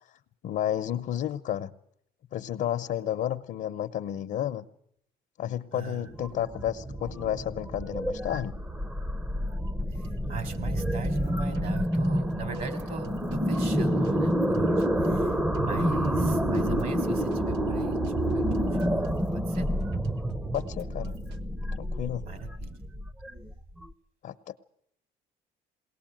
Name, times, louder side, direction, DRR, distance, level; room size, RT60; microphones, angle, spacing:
voice 1, 0.4-1.7 2.3-4.7 5.4-8.6 20.5-21.2 21.8-22.3 24.2-24.6, left 11 dB, 60° left, 7 dB, 0.8 m, -31 dB
voice 2, 5.7-6.0 10.3-15.3 15.6-18.0 18.3-19.1 19.3-19.7 22.2-22.7, right 5 dB, 60° right, 10 dB, 3.8 m, -40 dB
sound 1, 6.1-23.9, equal, 10° right, 0.8 m, -28 dB
sound 2, 9.7-21.5, right 3 dB, 90° right, 1.2 m, -50 dB
21.0 x 19.0 x 9.1 m, 0.73 s
cardioid pair, 110°, 17 cm